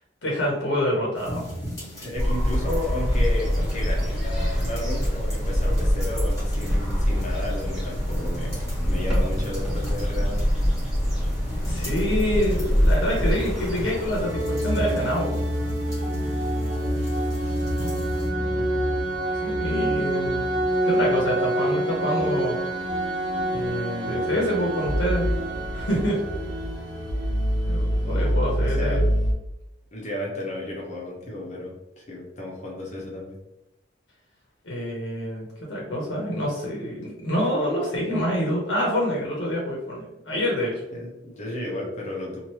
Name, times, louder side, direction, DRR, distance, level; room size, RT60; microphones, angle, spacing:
voice 1, 0.2-1.5 11.6-15.4 19.4-20.4 20.8-22.6 23.5-25.3 25.7-26.2 27.7-29.1 34.6-40.8, equal, 70° left, -3 dB, 0.9 m, -26 dB
sound 1, 1.1-18.3, equal, 20° left, 1.4 m, -39 dB
voice 2, 1.9-10.4 17.0-17.1 17.4-17.6 18.4-18.6 28.0-28.3 28.6-29.0 29.9-33.4 40.9-42.4, left 1 dB, 40° left, -3 dB, 0.7 m, -33 dB
sound 2, 2.2-14.2, equal, 5° right, 1.2 m, -24 dB
sound 3, 14.2-29.3, right 1 dB, 75° right, 0.7 m, -26 dB
3.1 x 2.5 x 2.9 m, 0.90 s
head